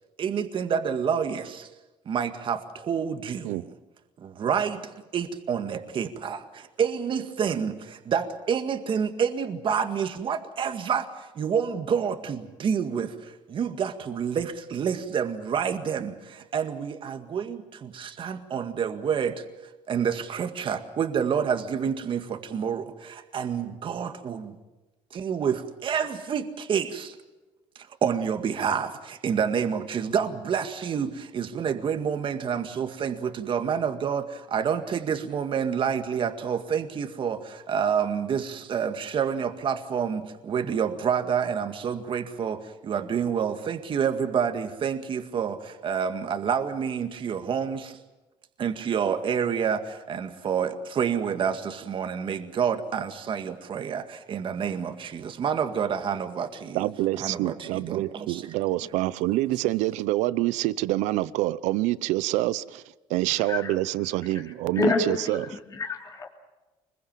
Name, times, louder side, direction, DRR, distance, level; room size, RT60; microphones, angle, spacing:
voice 1, 0.2-1.7 2.1-3.7 4.2-19.4 19.9-24.6 25.1-27.2 27.8-48.0 48.6-56.9 57.2-58.4, right 7 dB, 45° right, 7 dB, 2.0 m, -28 dB
voice 2, 56.7-62.8 63.1-65.6, right 16 dB, 85° right, 18 dB, 0.7 m, -26 dB
voice 3, 64.8-65.1 65.8-66.3, left 3 dB, 30° left, -1 dB, 3.1 m, -26 dB
24.5 x 21.5 x 7.5 m, 1.1 s
cardioid pair, 110°, 12 cm